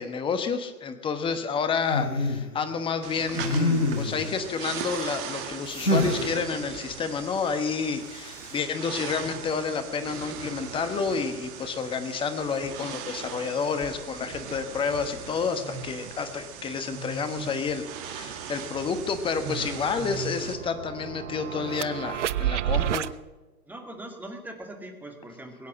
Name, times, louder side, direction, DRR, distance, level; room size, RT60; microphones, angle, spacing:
voice 1, 0.0-23.1, left 5 dB, 10° left, 8 dB, 1.1 m, -30 dB
sound 1, 1.9-2.5 3.3-4.3 5.7-6.2 8.2-8.6, left 2 dB, 85° left, 3.3 m, -26 dB
sound 2, 3.0-20.6, right 6 dB, 30° right, 1.7 m, -38 dB
sound 3, 17.7-17.8 18.1-23.1, right 11 dB, 50° right, 0.7 m, -32 dB
voice 2, 23.7-25.7, right 1 dB, 5° right, 3 dB, 2.1 m, -41 dB
22.0 x 8.2 x 7.5 m, 1.2 s
figure-of-eight pair, 120°, 45 cm